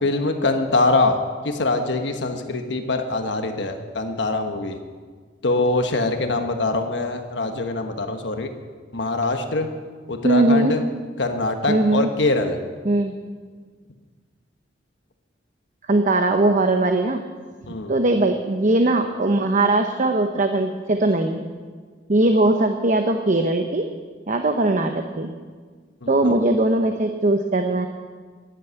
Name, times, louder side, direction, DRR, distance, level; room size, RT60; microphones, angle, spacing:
voice 1, 0.0-4.8 5.4-8.5 8.9-9.7 10.1-10.8 11.2-12.6 17.7-17.9 26.0-26.4, left 2 dB, 75° left, 5 dB, 1.3 m, -23 dB
voice 2, 10.2-10.7 11.7-12.1 12.8-13.1 15.9-17.2 17.9-21.5 22.1-23.9 24.3-25.3 26.1-27.9, right 2 dB, 45° right, 5 dB, 0.9 m, -20 dB
13.0 x 11.5 x 8.2 m, 1.5 s
head